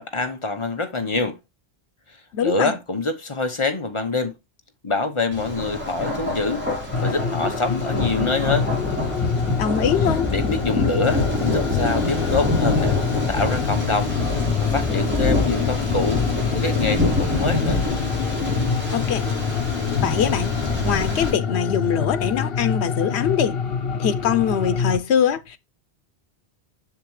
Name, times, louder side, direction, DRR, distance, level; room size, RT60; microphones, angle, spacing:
voice 1, 0.0-1.4 2.4-4.3 4.8-6.6 7.0-8.7 10.3-13.0 13.3-14.1 14.6-16.2 16.5-17.8, left 3 dB, 30° left, 0.9 m, -25 dB
voice 2, 2.3-2.7 9.6-10.3 18.9-19.2 20.0-20.5 20.8-23.6 24.0-25.6, left 8 dB, 85° left, 1.0 m, -22 dB
Thunder, 5.3-21.3, left 2 dB, 10° right, 3.9 m, -25 dB
sound 1, 6.9-25.0, left 6 dB, 65° left, 1.2 m, -26 dB
7.2 x 6.6 x 3.1 m
omnidirectional pair, 1.1 m